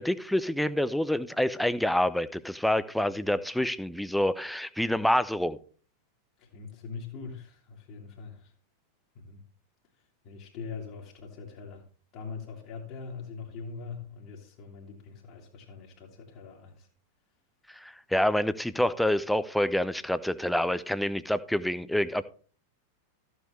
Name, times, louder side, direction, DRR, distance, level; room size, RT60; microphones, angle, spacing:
voice 1, 0.0-5.6 17.7-22.2, left 1 dB, ahead, 0.6 m, -27 dB
voice 2, 6.4-8.5 9.2-9.4 10.2-11.8 12.1-16.9, left 5 dB, 45° left, 2.3 m, -42 dB
14.0 x 8.1 x 3.2 m
figure-of-eight pair, 90°, 0 cm